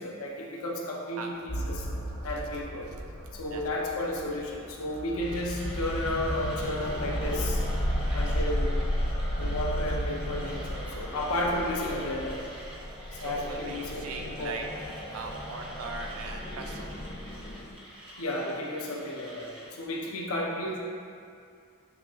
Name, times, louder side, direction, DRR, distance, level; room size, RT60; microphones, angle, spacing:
voice 1, 0.0-1.9 2.2-2.9 3.3-7.6 8.1-8.7 9.4-12.4 13.1-14.6 18.2-20.8, left 1 dB, 85° left, -2 dB, 0.7 m, -33 dB
sound 1, 1.5-17.7, equal, 55° left, 1.3 m, -34 dB
Mechanisms, 5.2-19.7, equal, 25° right, 0.7 m, -48 dB
voice 2, 13.2-14.6 15.1-16.9, right 4 dB, 80° right, 2 dB, 0.5 m, -39 dB
5.9 x 2.4 x 3.5 m, 2.3 s
head